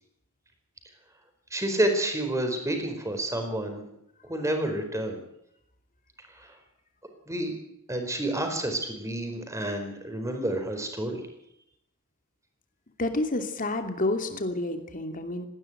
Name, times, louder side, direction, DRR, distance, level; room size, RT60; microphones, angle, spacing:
voice 1, 1.5-3.9 4.2-5.2 6.3-6.5 7.3-7.5 7.9-11.2, right 1 dB, 15° right, 5 dB, 4.6 m, -29 dB
voice 2, 13.0-15.5, left 2 dB, 40° left, 6 dB, 2.8 m, -29 dB
19.5 x 15.5 x 9.2 m, 0.77 s
head